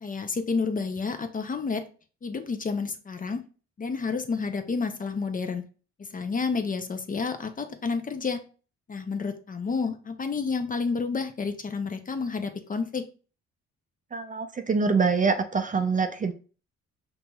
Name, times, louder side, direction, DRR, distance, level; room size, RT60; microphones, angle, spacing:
voice 1, 0.0-1.8 2.2-3.4 3.8-5.6 6.1-8.4 8.9-13.0, left 4 dB, 30° left, 8 dB, 0.5 m, -30 dB
voice 2, 14.1-16.3, right 4 dB, 25° right, 7 dB, 0.4 m, -25 dB
5.2 x 3.0 x 2.2 m, 0.38 s
cardioid pair, 90°, 30 cm